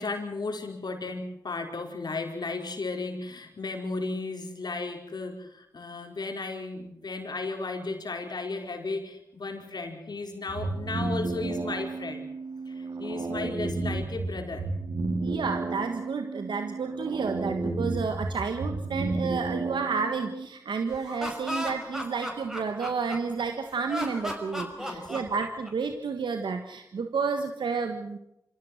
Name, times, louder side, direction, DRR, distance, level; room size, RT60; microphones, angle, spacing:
voice 1, 0.0-12.3 12.7-14.7 24.8-25.2, left 3 dB, 65° left, 4 dB, 4.8 m, -35 dB
sound 1, 10.5-20.5, right 3 dB, 65° right, 2.5 m, -32 dB
voice 2, 15.2-28.2, right 5 dB, 85° right, 6 dB, 1.5 m, -31 dB
Laughter, 20.9-23.4 23.9-25.9, equal, 5° right, 5.7 m, -35 dB
26.0 x 16.0 x 8.0 m, 0.82 s
cardioid pair, 50°, 8 cm